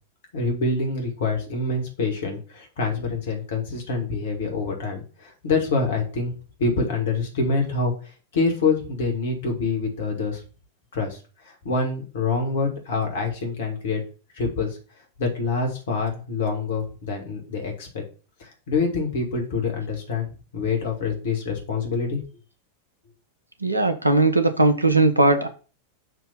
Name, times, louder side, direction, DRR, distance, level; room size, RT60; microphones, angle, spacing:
voice 1, 0.3-6.3 6.6-10.4 10.9-11.2 11.4-14.0 14.3-14.8 15.2-18.0 18.4-22.2, left 4 dB, 60° left, 2 dB, 1.8 m, -26 dB
voice 2, 23.6-25.5, right 2 dB, 85° right, 9 dB, 0.8 m, -18 dB
6.8 x 2.8 x 5.5 m, 0.37 s
figure-of-eight pair, 90°, 0 cm